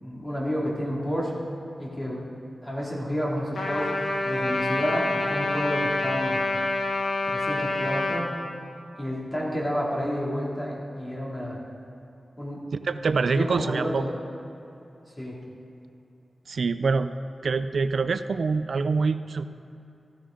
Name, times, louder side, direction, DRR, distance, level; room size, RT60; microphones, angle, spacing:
voice 1, 0.0-1.4 1.8-2.3 2.6-3.9 4.2-6.4 7.2-8.3 9.0-11.6 12.4-12.7 13.3-14.1 15.2-15.4, equal, 20° left, -5 dB, 2.5 m, -30 dB
Trumpet, 3.6-8.2, left 2 dB, 75° left, 1.2 m, -27 dB
voice 2, 12.8-14.0 16.5-17.2 17.4-19.4, right 4 dB, 75° right, 11 dB, 0.4 m, -25 dB
14.5 x 11.5 x 3.8 m, 2.8 s
wide cardioid pair, 85°, 0 cm